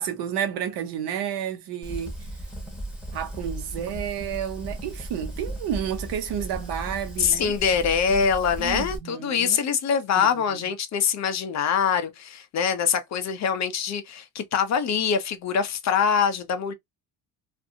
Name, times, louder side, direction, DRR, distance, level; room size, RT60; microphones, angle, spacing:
voice 1, 0.0-2.1 3.1-7.5 8.6-9.6 10.2-10.7, right 9 dB, 70° right, 0.9 m, -31 dB
Fire, 1.8-9.0, right 1 dB, ahead, 0.9 m, -36 dB
voice 2, 7.2-16.7, left 7 dB, 40° left, 0.5 m, -24 dB
2.5 x 2.5 x 2.6 m
cardioid pair, 145°, 42 cm